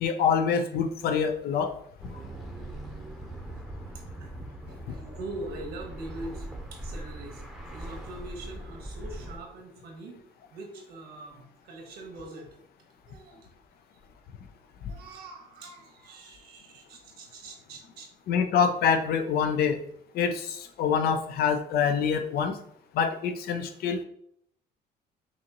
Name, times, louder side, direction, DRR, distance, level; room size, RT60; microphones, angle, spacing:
voice 1, 0.0-1.7 18.3-19.8 20.1-22.5 22.9-24.0, left 6 dB, 65° left, 7 dB, 0.6 m, -25 dB
sound 1, 2.0-9.4, right 1 dB, ahead, 0.8 m, -41 dB
voice 2, 4.7-7.4 7.7-10.2 10.5-12.6 13.1-13.4 14.9-18.1, right 2 dB, 70° right, 3 dB, 1.2 m, -43 dB
5.7 x 2.6 x 2.9 m, 0.69 s
cardioid pair, 110°, 17 cm